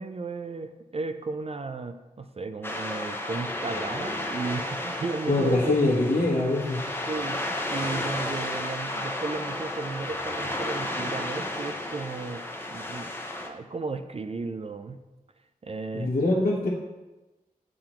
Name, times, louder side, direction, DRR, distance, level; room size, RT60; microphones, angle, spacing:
voice 1, 0.0-5.9 7.1-13.1 13.4-15.0 15.6-16.1, right 3 dB, 45° right, 8 dB, 0.4 m, -34 dB
sound 1, 2.6-13.5, left 1 dB, 15° left, 0.8 m, -33 dB
voice 2, 5.3-6.8 15.9-16.7, left 2 dB, 70° left, -8 dB, 1.5 m, -23 dB
8.7 x 3.9 x 4.4 m, 1.1 s
wide cardioid pair, 90°, 15 cm